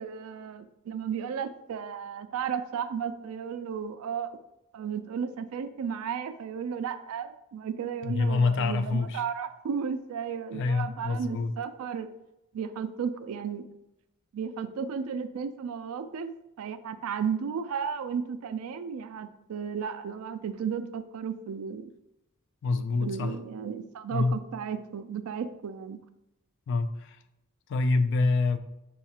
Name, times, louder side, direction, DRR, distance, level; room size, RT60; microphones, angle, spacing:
voice 1, 0.0-4.4 4.7-12.1 12.5-13.7 14.3-16.3 16.6-21.9 23.0-26.0, right 7 dB, 70° right, 0.3 m, -34 dB
voice 2, 8.0-9.2 10.5-11.5 22.6-23.3 24.1-24.4 26.7-27.2 27.7-28.6, left 3 dB, 55° left, 0.3 m, -26 dB
6.3 x 2.3 x 2.8 m
head